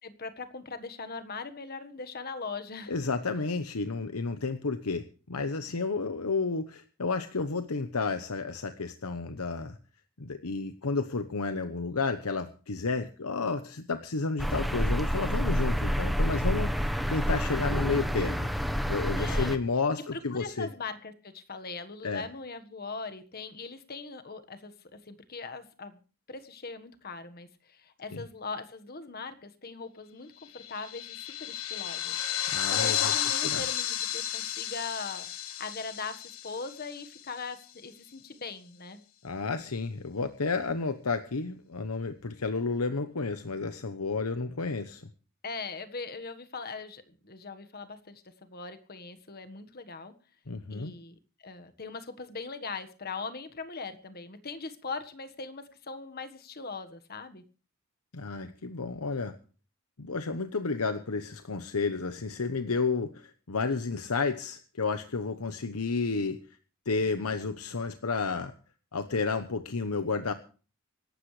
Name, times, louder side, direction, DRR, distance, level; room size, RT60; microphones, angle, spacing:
voice 1, 0.0-2.9 19.2-19.5 20.1-26.0 26.3-32.2 32.7-39.0 45.4-50.1 50.7-57.4, left 4 dB, 45° left, 9 dB, 1.5 m, -40 dB
voice 2, 2.9-9.8 10.2-18.5 18.9-20.7 22.0-22.3 28.1-28.2 32.5-33.1 33.4-33.6 39.2-45.1 50.5-50.9 58.1-59.4 60.0-66.4 66.9-68.5 68.9-70.3, left 4 dB, 90° left, 9 dB, 1.0 m, -31 dB
sound 1, 14.4-19.6, equal, ahead, 1.1 m, -28 dB
sound 2, 30.5-37.4, left 10 dB, 70° left, 1.5 m, -32 dB
25.0 x 12.5 x 3.3 m, 0.38 s
head